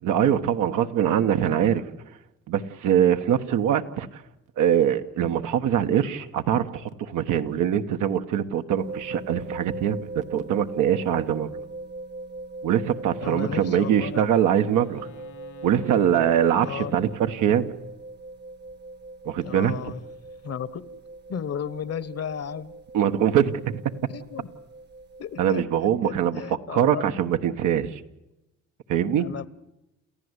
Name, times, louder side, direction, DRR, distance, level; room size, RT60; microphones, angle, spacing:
voice 1, 0.0-1.8 2.5-4.2 4.6-11.5 12.6-15.1 15.6-17.7 19.2-19.7 22.9-23.8 25.4-26.4 26.7-28.0 28.9-29.3, right 9 dB, 85° right, 1.3 m, -23 dB
sound 1, 8.8-25.6, right 2 dB, 35° right, 0.9 m, -41 dB
voice 2, 13.2-14.3 16.6-17.0 19.4-20.0 20.4-20.8 21.3-22.7 24.1-24.5 25.2-27.1 29.2-29.5, left 8 dB, 55° left, 1.2 m, -34 dB
Wind instrument woodwind instrument, 13.8-18.0, left 1 dB, 90° left, 4.1 m, -49 dB
28.5 x 14.5 x 8.2 m
cardioid pair, 90°, 30 cm